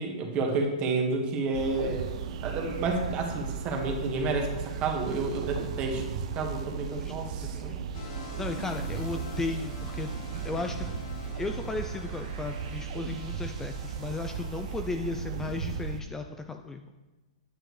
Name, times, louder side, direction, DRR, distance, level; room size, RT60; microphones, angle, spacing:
voice 1, 0.0-2.1 2.4-6.0 6.3-7.7, right 3 dB, 30° right, 2 dB, 1.7 m, -30 dB
sound 1, 1.5-16.0, right 7 dB, 60° right, 0.6 m, -36 dB
sound 2, 7.9-14.8, left 4 dB, 55° left, 1.5 m, -45 dB
voice 2, 8.4-10.9 11.4-16.9, left 3 dB, 10° left, 5 dB, 0.4 m, -35 dB
9.1 x 7.7 x 3.3 m, 1.1 s
hypercardioid pair, 130°, 4 cm